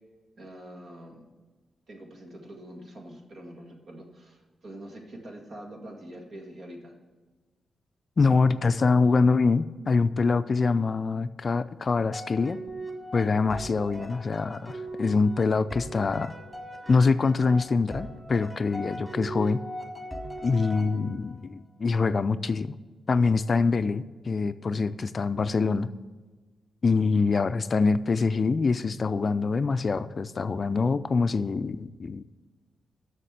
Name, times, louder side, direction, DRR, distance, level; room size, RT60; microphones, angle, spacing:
voice 1, 0.4-1.3 1.9-6.9, right 1 dB, 60° right, 1 dB, 1.9 m, -44 dB
voice 2, 8.2-12.6 13.1-16.3 16.9-19.6 20.4-22.8 23.1-25.9 26.8-32.2, left 4 dB, 45° left, 13 dB, 0.3 m, -24 dB
sound 1, 12.1-21.4, right 1 dB, 5° right, 1.9 m, -40 dB
6.8 x 6.6 x 7.4 m, 1.3 s
cardioid pair, 70°, 0 cm